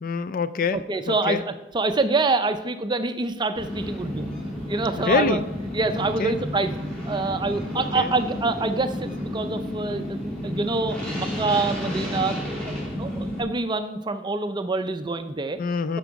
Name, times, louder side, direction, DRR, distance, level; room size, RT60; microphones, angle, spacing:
voice 1, 0.0-0.8 1.1-1.4 5.0-5.4 6.2-6.4 7.7-8.1 15.6-16.0, left 5 dB, 40° left, 14 dB, 0.4 m, -25 dB
voice 2, 0.7-4.3 4.7-5.4 5.7-6.8 7.1-12.7 13.0-15.6, right 3 dB, 20° right, 9 dB, 0.4 m, -26 dB
sound 1, 3.6-13.4, equal, 5° left, 2.5 m, -31 dB
10.0 x 6.1 x 4.7 m, 0.97 s
head